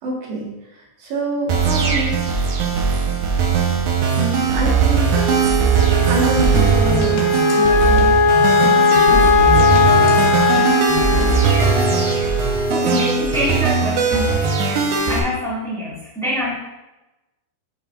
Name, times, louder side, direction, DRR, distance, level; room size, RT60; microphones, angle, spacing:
voice 1, 0.0-2.2 4.2-5.2 6.0-7.2 7.5-8.1 12.8-13.3, right 1 dB, 90° right, -3 dB, 4.1 m, -26 dB
sound 1, 1.5-15.2, right 5 dB, 70° right, 1.9 m, -19 dB
Wind instrument woodwind instrument, 5.1-13.6, left 3 dB, 55° left, 2.2 m, -18 dB
sound 2, 6.4-11.4, left 3 dB, 85° left, 3.2 m, -28 dB
voice 2, 12.7-16.6, equal, ahead, -7 dB, 0.9 m, -26 dB
13.0 x 5.6 x 2.6 m, 0.99 s
omnidirectional pair, 4.7 m